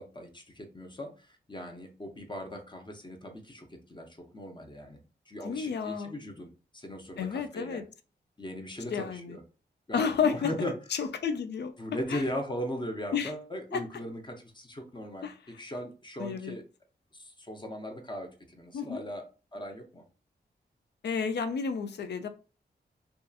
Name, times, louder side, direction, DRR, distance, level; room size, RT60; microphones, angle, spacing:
voice 1, 0.0-7.8 8.4-9.4 9.9-10.7 11.8-16.6 17.1-19.3 19.5-20.0, equal, 25° left, 0.6 m, -39 dB
voice 2, 5.4-6.1 7.2-7.8 8.9-9.4 9.9-11.7 12.1-12.2 13.1-13.3 13.7-13.8 15.2-15.4 16.2-16.6 18.7-19.0 21.0-22.3, left 6 dB, 70° left, 0.4 m, -31 dB
2.7 x 2.3 x 2.3 m
cardioid pair, 65°, 18 cm